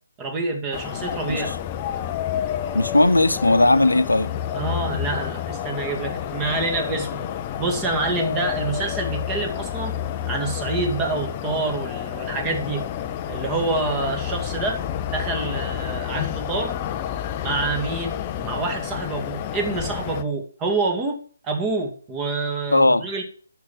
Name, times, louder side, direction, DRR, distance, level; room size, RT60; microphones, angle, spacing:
voice 1, 0.2-1.5 4.5-7.2 7.6-9.9 10.3-12.8 13.3-14.8 15.1-16.8 17.4-18.1 18.4-23.2, right 3 dB, 15° right, 2.3 m, -27 dB
sound 1, 0.7-20.2, left 10 dB, 25° left, 0.8 m, -29 dB
voice 2, 2.7-4.3 22.7-23.1, left 2 dB, 80° left, 1.1 m, -17 dB
9.2 x 7.1 x 7.3 m
figure-of-eight pair, 140°, 0 cm